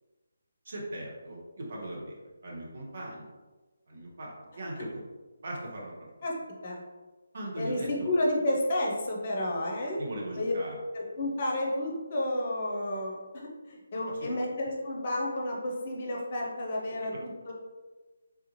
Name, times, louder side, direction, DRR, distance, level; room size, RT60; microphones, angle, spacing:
voice 1, 0.6-3.3 3.9-5.0 5.4-6.1 7.3-7.9 10.0-10.8 14.2-14.3, right 1 dB, 50° right, -3 dB, 0.9 m, -39 dB
voice 2, 7.6-10.0 10.4-10.6 10.9-17.5, left 1 dB, 40° left, -2 dB, 0.6 m, -31 dB
3.5 x 2.4 x 3.0 m, 1.3 s
figure-of-eight pair, 150°, 0 cm